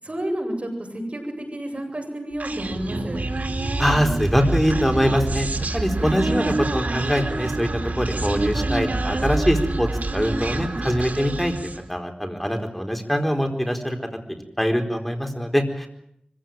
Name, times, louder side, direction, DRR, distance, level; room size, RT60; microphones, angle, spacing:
voice 1, 0.0-3.2 6.0-6.3, right 1 dB, 50° right, 2 dB, 7.9 m, -30 dB
Human voice, 2.4-11.9, right 2 dB, 80° right, 2.7 m, -27 dB
voice 2, 3.8-7.7 7.9-11.5 11.9-14.0 14.3-15.9, equal, 5° left, 4 dB, 4.3 m, -23 dB
25.0 x 16.5 x 9.4 m, 0.74 s
wide cardioid pair, 50°, 3 cm